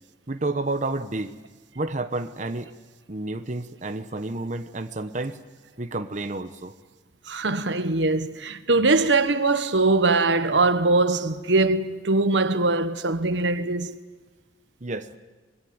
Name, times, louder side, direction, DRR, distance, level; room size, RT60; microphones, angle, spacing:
voice 1, 0.3-1.3 1.7-2.7 3.1-5.4 5.8-6.7 9.0-9.1 14.8-15.1, right 2 dB, 40° right, 1.1 m, -30 dB
voice 2, 7.3-13.9, right 3 dB, 85° right, 1.4 m, -22 dB
25.5 x 21.0 x 9.5 m
head